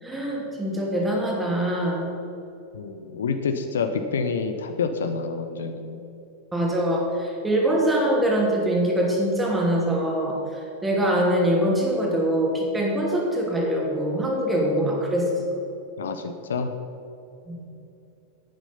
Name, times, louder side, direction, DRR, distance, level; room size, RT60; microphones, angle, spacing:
voice 1, 0.0-2.1 6.5-15.4 17.5-17.6, right 1 dB, 10° right, -2 dB, 2.6 m, -23 dB
voice 2, 2.7-6.0 16.0-16.7, left 5 dB, 65° left, 7 dB, 0.7 m, -28 dB
10.5 x 9.1 x 5.5 m, 2.8 s
figure-of-eight pair, 90°, 0 cm